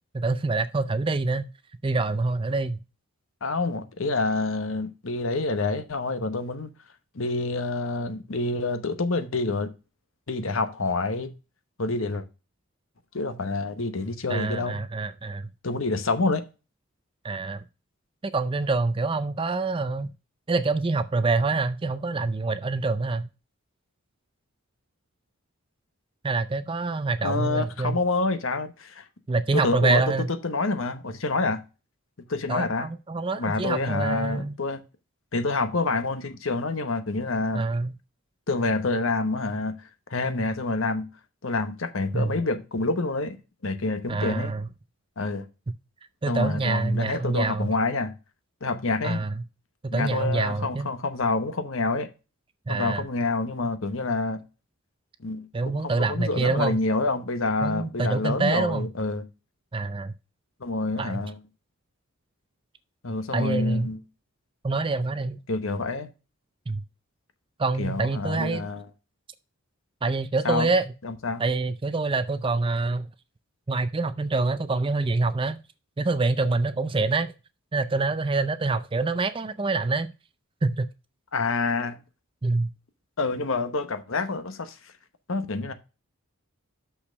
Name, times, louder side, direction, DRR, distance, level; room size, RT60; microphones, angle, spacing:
voice 1, 0.1-1.5 1.8-2.8 14.3-15.5 17.2-17.6 18.2-20.1 20.5-23.3 26.2-28.0 29.3-30.3 32.5-34.6 37.5-37.9 42.1-42.3 44.1-44.7 46.2-47.7 49.0-49.3 49.8-50.9 52.7-53.1 55.5-56.8 57.6-58.9 59.7-60.1 61.0-61.2 63.3-63.9 64.6-65.4 66.7-66.8 67.6-68.7 70.0-70.9 71.4-73.1 73.7-75.6 76.0-77.3 77.7-80.1 80.6-80.9 82.4-82.7, right 3 dB, 25° right, 0.4 m, -26 dB
voice 2, 3.4-6.7 7.1-9.7 10.3-11.3 11.8-12.2 13.1-14.8 15.6-16.4 27.2-29.0 29.5-30.0 30.4-31.6 32.3-32.9 33.3-34.8 35.3-37.7 38.5-39.7 40.1-41.1 41.4-43.4 43.6-44.5 45.2-45.4 46.3-48.1 48.6-49.2 49.9-52.1 52.7-54.4 55.2-55.5 55.7-59.2 60.6-61.4 63.0-64.0 65.5-66.1 67.8-68.8 70.4-70.7 71.0-71.4 81.3-82.0 83.2-84.8 85.3-85.7, left 3 dB, 65° left, 1.0 m, -27 dB
6.4 x 5.8 x 5.1 m
head